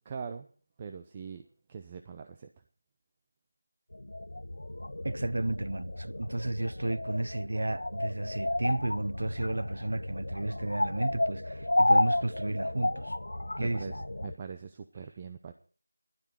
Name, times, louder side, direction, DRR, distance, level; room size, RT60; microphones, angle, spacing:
voice 1, 0.0-0.5 0.8-2.5 13.6-14.0 14.2-15.5, right 6 dB, 15° right, 0.6 m, -42 dB
sound 1, 3.9-14.3, left 1 dB, 70° left, 0.8 m, -32 dB
voice 2, 5.0-13.2 13.6-13.9, right 2 dB, 55° right, 0.8 m, -33 dB
16.0 x 12.0 x 4.4 m
figure-of-eight pair, 175°, 0 cm